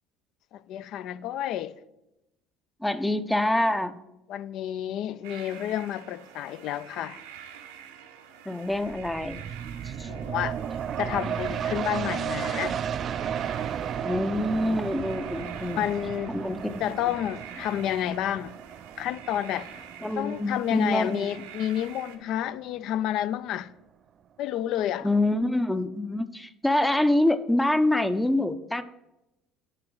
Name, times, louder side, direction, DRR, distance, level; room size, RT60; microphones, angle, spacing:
voice 1, 0.5-1.7 4.3-7.2 10.1-10.6 11.0-12.8 15.7-16.4 16.8-18.6 19.0-19.7 20.2-23.7 24.4-25.1, left 11 dB, 65° left, 0.3 m, -30 dB
voice 2, 2.8-4.0 8.5-9.4 9.8-10.1 14.0-15.8 16.3-17.1 20.0-21.3 25.0-28.8, left 1 dB, 10° left, 0.5 m, -26 dB
sound 1, 5.2-22.2, right 9 dB, 85° right, 0.7 m, -47 dB
sound 2, 8.7-22.0 22.4-22.5, right 8 dB, 45° right, 0.3 m, -34 dB
10.0 x 3.8 x 3.8 m
hypercardioid pair, 70°, 0 cm